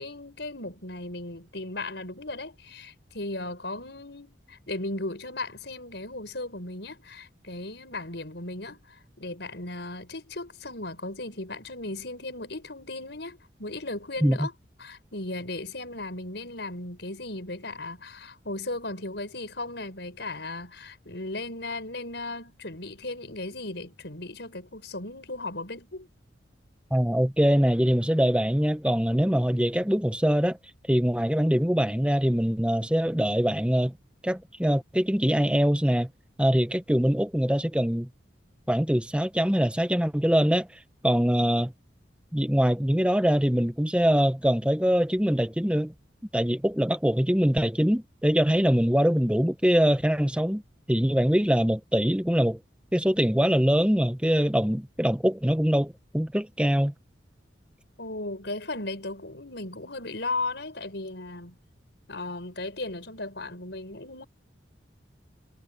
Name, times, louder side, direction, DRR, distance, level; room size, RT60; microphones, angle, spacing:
voice 1, 0.0-14.5 14.8-26.1 58.0-61.6 62.1-64.2, left 2 dB, 65° left, 6.4 m, -36 dB
voice 2, 26.9-30.6 30.9-33.9 34.2-36.1 36.4-38.1 38.7-40.7 41.0-41.7 42.3-45.9 46.3-50.6 50.9-52.6 52.9-56.9, equal, 5° right, 1.0 m, -23 dB
head